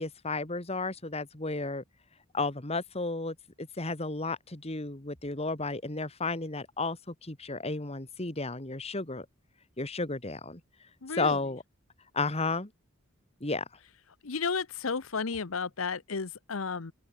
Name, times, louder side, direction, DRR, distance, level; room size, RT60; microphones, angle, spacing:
voice 1, 0.0-1.8 2.3-9.3 9.8-10.6 11.2-11.6 12.1-12.7 13.4-13.6, left 3 dB, 30° left, 2.1 m, -33 dB
voice 2, 11.0-11.4 14.2-16.9, left 5 dB, 75° left, 0.9 m, -33 dB
head